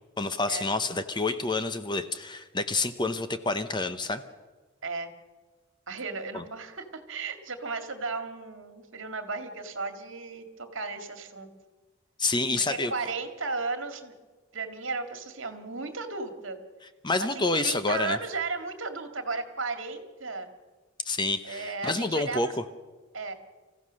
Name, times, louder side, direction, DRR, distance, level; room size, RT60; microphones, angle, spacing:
voice 1, 0.2-4.2 6.3-6.4 12.2-12.9 17.0-18.2 21.0-22.6, left 3 dB, 20° left, 10 dB, 0.8 m, -28 dB
voice 2, 4.8-5.1 5.9-11.5 12.6-14.2 14.5-16.6 17.2-20.5 21.4-22.4 23.1-23.3, right 4 dB, 65° right, 7 dB, 2.1 m, -35 dB
26.5 x 15.0 x 6.4 m, 1.3 s
head